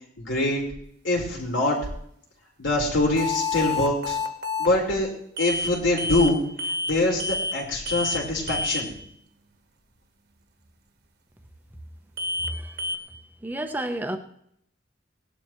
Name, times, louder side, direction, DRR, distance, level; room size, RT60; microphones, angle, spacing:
voice 1, 0.2-0.6 1.0-1.8 2.6-4.2 4.6-5.1 5.4-6.4 6.9-8.9, left 2 dB, 75° left, 4.4 m, -24 dB
sound 1, 3.2-4.7 5.4-5.7 6.0-6.3 6.6-6.9 7.2-7.6 7.9-8.2 8.5-8.8 12.2-12.5 12.8-13.0, left 3 dB, 55° right, 1.3 m, -28 dB
voice 2, 13.4-14.2, right 1 dB, 10° right, 0.8 m, -30 dB
19.0 x 11.5 x 3.2 m
head